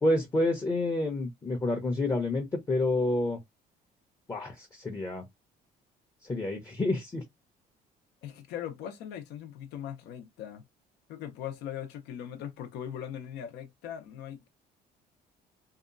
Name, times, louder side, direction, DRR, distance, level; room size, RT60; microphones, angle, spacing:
voice 1, 0.0-3.4 4.3-5.2 6.2-7.2, left 2 dB, 20° left, 0.6 m, -29 dB
voice 2, 8.2-10.6 11.1-14.5, left 9 dB, 85° left, 0.7 m, -40 dB
2.7 x 2.3 x 2.4 m
cardioid pair, 110°, 17 cm